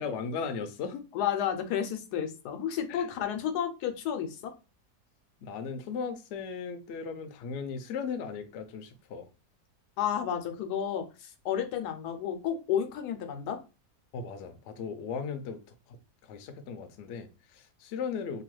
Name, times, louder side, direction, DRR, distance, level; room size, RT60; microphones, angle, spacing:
voice 1, 0.0-1.0 2.9-3.1 5.4-9.3 14.1-18.4, left 5 dB, 70° left, 0.7 m, -37 dB
voice 2, 1.1-4.5 10.0-13.6, left 9 dB, 90° left, 1.1 m, -31 dB
2.9 x 2.3 x 3.0 m
omnidirectional pair, 1.7 m